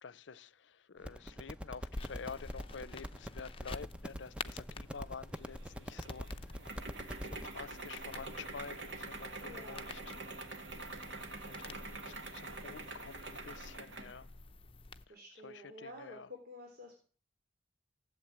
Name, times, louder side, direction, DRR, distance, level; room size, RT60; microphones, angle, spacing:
voice 1, 0.0-6.6 7.2-10.2 11.3-14.3 15.1-15.2 15.4-16.3, left 5 dB, 85° left, 0.6 m, -49 dB
sound 1, 1.0-7.5, equal, 5° right, 0.8 m, -44 dB
sound 2, 1.9-15.0, left 3 dB, 30° left, 0.7 m, -50 dB
sound 3, 5.4-14.2, right 2 dB, 80° right, 2.3 m, -46 dB
voice 2, 9.4-9.9 15.1-17.0, left 1 dB, 55° right, 3.6 m, -50 dB
16.5 x 8.1 x 8.7 m
head